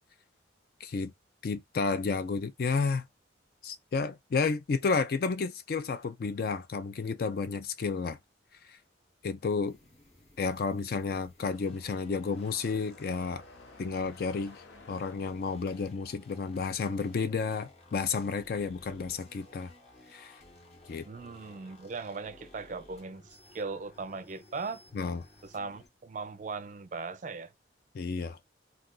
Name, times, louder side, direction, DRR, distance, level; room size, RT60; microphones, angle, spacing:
voice 1, 0.8-1.1 1.4-3.1 3.6-8.2 8.7-8.8 9.2-9.8 10.4-13.4 13.8-19.7 20.1-20.4 20.9-21.1 24.9-25.2 27.9-28.4, left 4 dB, 50° left, 0.3 m, -31 dB
sound 1, 9.6-25.9, left 2 dB, 35° left, 0.8 m, -56 dB
sound 2, 9.8-10.0 10.3-18.6 18.9-19.9 20.9-21.0 21.8-21.9 23.7-23.8, left 3 dB, 85° left, 0.9 m, -56 dB
voice 2, 21.0-24.8 25.5-27.5, right 4 dB, 40° right, 0.4 m, -39 dB
2.4 x 2.3 x 3.6 m
head